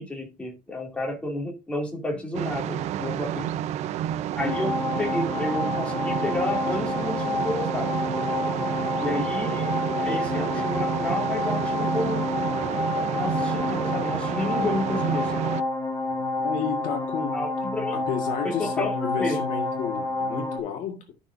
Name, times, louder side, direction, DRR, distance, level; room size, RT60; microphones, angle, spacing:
voice 1, 0.0-3.5 4.3-7.9 9.0-12.3 13.1-15.5 17.3-18.0 18.4-19.4, left 2 dB, 10° left, 2.7 m, -31 dB
sound 1, 2.3-15.6, right 11 dB, 45° right, 0.4 m, -30 dB
sound 2, 4.4-20.6, left 2 dB, 25° left, 2.3 m, -29 dB
voice 2, 16.4-17.4 17.9-21.1, left 7 dB, 55° left, 1.7 m, -31 dB
12.5 x 6.2 x 2.6 m
cardioid pair, 170°, 16 cm